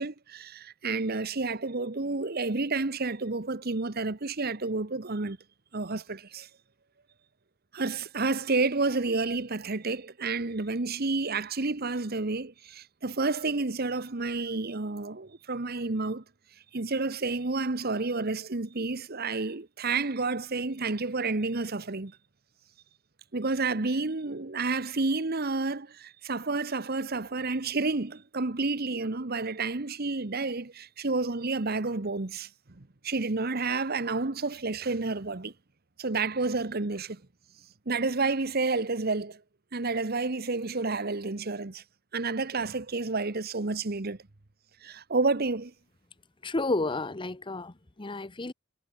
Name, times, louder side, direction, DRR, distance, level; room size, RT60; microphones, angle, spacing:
voice 1, 0.0-5.4 5.7-6.5 7.7-16.2 16.7-22.2 23.3-35.5 36.0-37.2 37.9-39.4 39.7-41.8 42.1-44.2 44.8-45.7, right 3 dB, 50° right, 1.2 m, -30 dB
voice 2, 46.4-48.5, left 2 dB, 25° left, 0.8 m, -31 dB
head